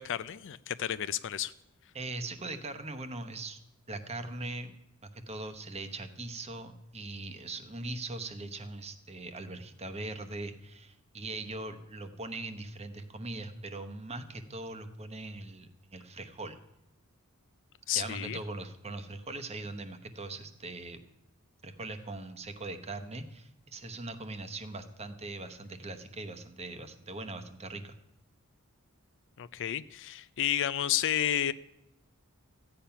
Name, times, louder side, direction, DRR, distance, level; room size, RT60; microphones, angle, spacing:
voice 1, 0.0-1.5 17.9-18.4 29.4-31.5, left 11 dB, 60° left, 15 dB, 0.4 m, -31 dB
voice 2, 1.9-3.6 3.9-4.7 5.0-16.6 17.9-21.0 21.6-28.0, right 2 dB, 30° right, 8 dB, 0.9 m, -41 dB
14.0 x 8.8 x 5.7 m, 0.87 s
head